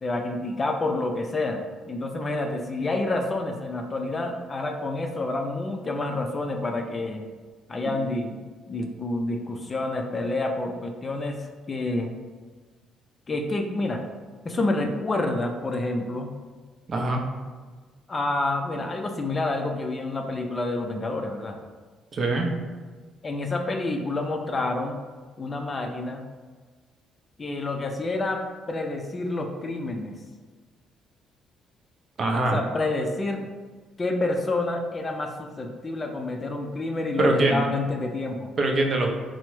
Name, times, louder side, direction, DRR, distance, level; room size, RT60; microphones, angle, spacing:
voice 1, 0.0-7.2 7.7-8.4 8.7-12.1 13.3-14.0 14.4-16.3 18.1-21.6 23.2-25.0 25.4-26.3 27.4-30.1 32.5-33.5 34.0-38.5, left 2 dB, 30° left, 3 dB, 0.4 m, -28 dB
voice 2, 16.9-17.2 22.1-22.6 32.2-32.6 37.2-37.6 38.6-39.1, right 2 dB, 40° right, 2 dB, 0.5 m, -23 dB
3.3 x 2.0 x 3.0 m, 1.4 s
cardioid pair, 100°, 0 cm